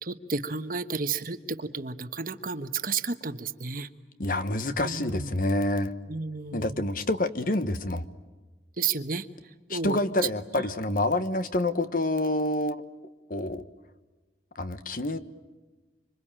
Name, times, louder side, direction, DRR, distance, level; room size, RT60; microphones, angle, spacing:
voice 1, 0.0-3.9 4.8-5.3 6.1-6.8 8.8-9.3 9.7-10.3, right 5 dB, 50° right, 9 dB, 1.2 m, -32 dB
voice 2, 4.2-5.9 6.5-8.0 9.7-12.8 13.3-13.6 14.5-15.2, left 1 dB, 50° left, 11 dB, 1.2 m, -27 dB
26.0 x 25.5 x 9.0 m, 1.3 s
head